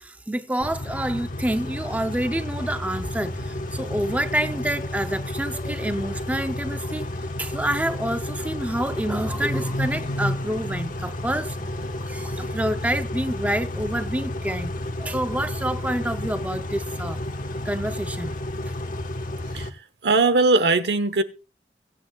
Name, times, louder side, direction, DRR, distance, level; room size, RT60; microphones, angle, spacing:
voice 1, 0.0-7.1 7.4-11.6 12.0-14.7 15.0-17.2 17.6-18.4 18.6-18.7, right 1 dB, 10° right, 0.6 m, -28 dB
Car / Idling / Accelerating revving vroom, 0.6-19.7, left 1 dB, 50° left, 1.3 m, -31 dB
voice 2, 19.5-21.2, right 3 dB, 75° right, 1.0 m, -20 dB
23.0 x 8.6 x 2.3 m
head